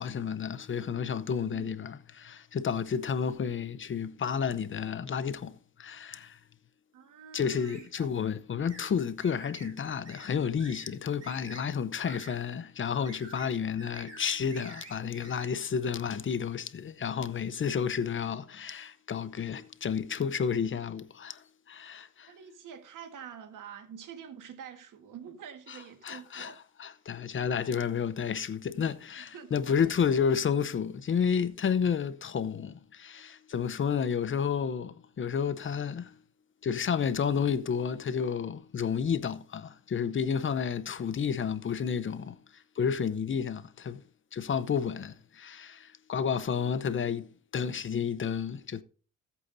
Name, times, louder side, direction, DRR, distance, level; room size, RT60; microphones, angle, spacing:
voice 1, 0.0-6.4 7.3-22.3 25.7-25.8 26.0-36.1 36.6-44.0 44.3-48.8, left 7 dB, 35° left, 0.8 m, -31 dB
voice 2, 1.2-1.7 6.9-8.1 22.3-26.6 29.2-29.7, right 8 dB, 70° right, 1.8 m, -47 dB
sound 1, 7.7-7.9 8.7-8.9 9.2-9.7 10.1-10.3 10.6-10.9 11.2-11.6 12.0-12.4 12.9-13.5 13.8-14.2 14.5-15.5, right 3 dB, 50° right, 5.8 m, -48 dB
15.5 x 8.4 x 2.7 m
cardioid pair, 110°, 33 cm